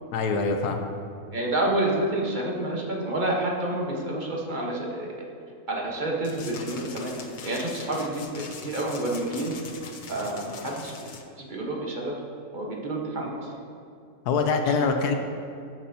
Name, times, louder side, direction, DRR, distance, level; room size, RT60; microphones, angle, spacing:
voice 1, 0.1-0.9 14.3-15.1, left 4 dB, 85° left, 4 dB, 1.3 m, -24 dB
voice 2, 1.3-5.1 5.7-7.1 7.4-9.5 10.1-10.9 11.4-12.2 12.5-13.5 14.7-14.8, right 1 dB, 35° right, -2 dB, 1.3 m, -29 dB
sound 1, 6.2-11.2, left 5 dB, 65° left, 0.4 m, -42 dB
13.5 x 7.6 x 2.8 m, 2.5 s
omnidirectional pair, 1.6 m